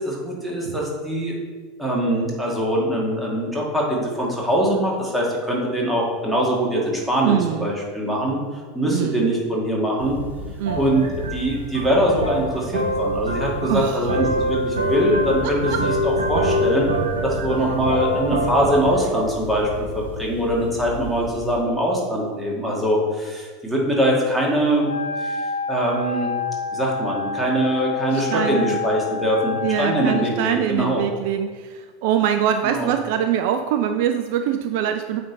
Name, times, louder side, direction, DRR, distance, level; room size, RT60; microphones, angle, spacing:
voice 1, 0.0-1.4 1.8-8.4 8.7-10.2 10.8-11.1 11.3-16.9 17.2-19.7 19.9-24.9 25.2-25.4 25.7-26.3 26.7-31.0 32.6-32.9, right 1 dB, 5° right, -3 dB, 1.9 m, -22 dB
voice 2, 7.2-7.7 8.9-9.2 10.6-10.9 13.7-14.0 15.4-15.8 28.1-28.8 29.6-35.2, right 9 dB, 55° right, 7 dB, 0.3 m, -23 dB
sound 1, 10.0-21.6, equal, 80° right, 0.8 m, -26 dB
Wind instrument woodwind instrument, 24.8-30.4, left 5 dB, 85° left, 0.5 m, -28 dB
8.5 x 3.5 x 4.0 m, 1.5 s
figure-of-eight pair, 80°, 0 cm